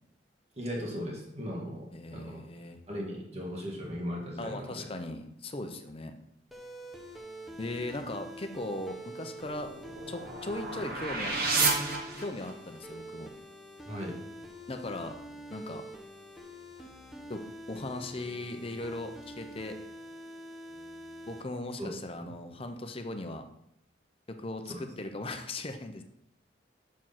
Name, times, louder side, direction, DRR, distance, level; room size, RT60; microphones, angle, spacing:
voice 1, 0.6-2.4 2.9-4.9 13.9-14.2 21.8-21.9 22.2-22.3 24.7-24.8, equal, 35° right, -2 dB, 1.9 m, -37 dB
voice 2, 1.9-2.8 4.4-6.1 7.6-9.7 10.1-11.4 12.2-13.3 14.7-15.1 15.5-15.9 17.3-17.4 17.7-19.8 21.3-23.4 24.3-26.0, left 2 dB, 30° left, 6 dB, 0.7 m, -38 dB
sound 1, 6.5-21.4, equal, ahead, 0.9 m, -46 dB
sound 2, 9.4-12.8, right 3 dB, 55° right, 1.3 m, -32 dB
6.2 x 4.8 x 5.8 m, 0.76 s
head